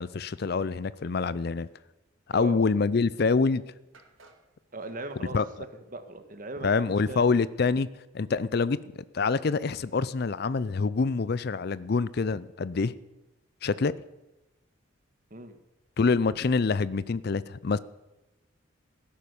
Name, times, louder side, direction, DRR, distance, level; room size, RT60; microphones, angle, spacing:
voice 1, 0.0-1.7 2.3-3.6 5.3-5.4 6.6-7.9 8.1-12.9 13.6-14.0 16.0-17.8, left 4 dB, 50° left, 0.5 m, -26 dB
sound 1, 3.9-5.5, right 2 dB, 80° right, 2.2 m, -57 dB
voice 2, 4.7-5.4 5.9-7.2 15.3-15.6, right 2 dB, 45° right, 1.5 m, -39 dB
17.0 x 10.5 x 7.0 m
head